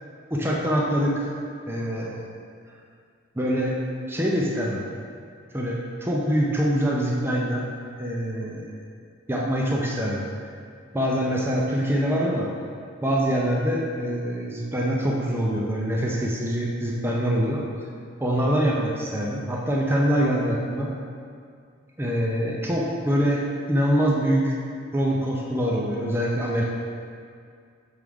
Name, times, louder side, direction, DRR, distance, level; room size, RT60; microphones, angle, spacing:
voice 1, 0.3-1.3 1.7-2.3 3.4-3.8 4.1-4.9 5.5-7.6 8.0-8.8 9.3-10.2 10.9-12.5 13.0-17.6 18.2-20.9 22.0-24.5 24.9-26.6, equal, 10° right, -3 dB, 0.5 m, -24 dB
6.2 x 3.7 x 4.8 m, 2.2 s
head